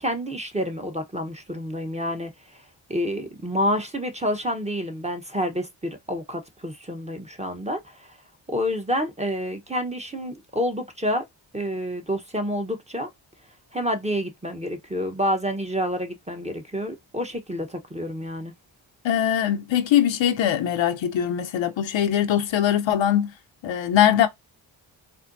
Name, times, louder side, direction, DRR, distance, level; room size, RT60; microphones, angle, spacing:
voice 1, 0.0-2.6 2.9-8.2 8.5-11.2 11.5-13.1 13.7-18.5, equal, 15° right, 1.0 m, -28 dB
voice 2, 19.0-23.3 23.6-24.3, left 10 dB, 70° left, 0.8 m, -21 dB
4.3 x 2.2 x 2.6 m
cardioid pair, 50°, 47 cm